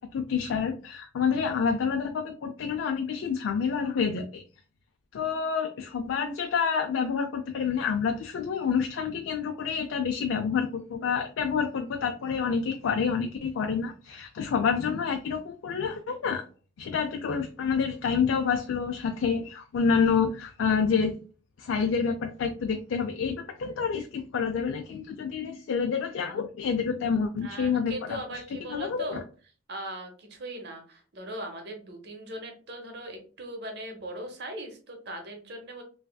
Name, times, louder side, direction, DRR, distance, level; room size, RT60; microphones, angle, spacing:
voice 1, 0.1-4.4 5.1-16.4 16.8-21.2 21.6-28.2 28.7-29.2, left 6 dB, 85° left, 5 dB, 0.4 m, -28 dB
voice 2, 27.4-29.2 29.7-35.8, right 1 dB, 60° right, 4 dB, 0.8 m, -39 dB
3.2 x 2.7 x 2.2 m, 0.38 s
head